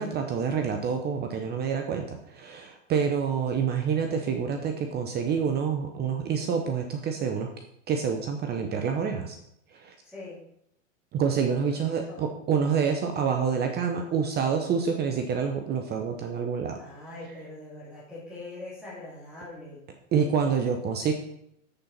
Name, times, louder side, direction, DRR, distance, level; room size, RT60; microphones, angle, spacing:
voice 1, 0.0-7.5 7.9-9.4 9.7-9.9 11.1-16.8 20.1-21.1, right 6 dB, 25° right, 5 dB, 0.7 m, -27 dB
voice 2, 10.0-10.4 11.7-12.4 16.8-19.8, left 2 dB, ahead, -8 dB, 2.4 m, -42 dB
7.4 x 6.7 x 4.1 m, 0.75 s
hypercardioid pair, 125°, 39 cm